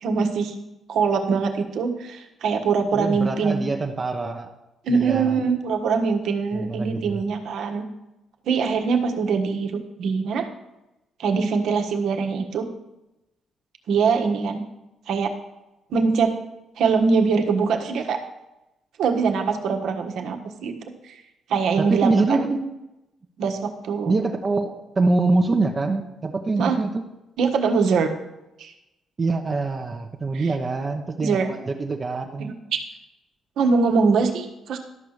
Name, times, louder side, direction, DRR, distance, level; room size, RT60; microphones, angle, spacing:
voice 1, 0.0-0.5 0.9-3.6 4.8-7.8 8.4-10.5 11.2-12.7 13.9-14.6 15.1-15.3 15.9-16.3 16.8-18.2 19.0-20.8 21.0-21.2 21.5-22.4 23.4-24.1 26.6-26.8 27.4-28.1 28.6-28.7 30.3-30.5 31.2-31.5 32.4-32.8 33.6-34.8, right 5 dB, 75° right, 3 dB, 1.4 m, -23 dB
voice 2, 2.9-4.5 4.9-5.3 6.5-7.2 21.8-22.7 24.1-27.0 29.2-32.5, right 3 dB, 30° right, 3 dB, 1.0 m, -24 dB
12.5 x 5.7 x 6.5 m, 0.95 s
cardioid pair, 90°, 0 cm